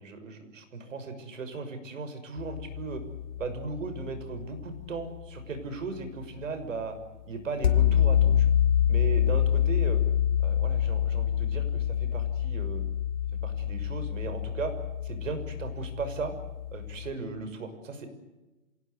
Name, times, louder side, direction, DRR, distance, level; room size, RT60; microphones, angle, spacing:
voice 1, 0.0-3.0 3.4-7.0 7.3-8.5 8.9-10.0 10.4-12.8 13.3-14.7 15.0-16.3 16.7-18.1, right 4 dB, 80° right, 9 dB, 6.2 m, -37 dB
sound 1, 2.4-5.6 7.6-17.1, left 10 dB, 50° left, 2.6 m, -27 dB
27.0 x 19.0 x 8.2 m, 1.1 s
hypercardioid pair, 170°, 38 cm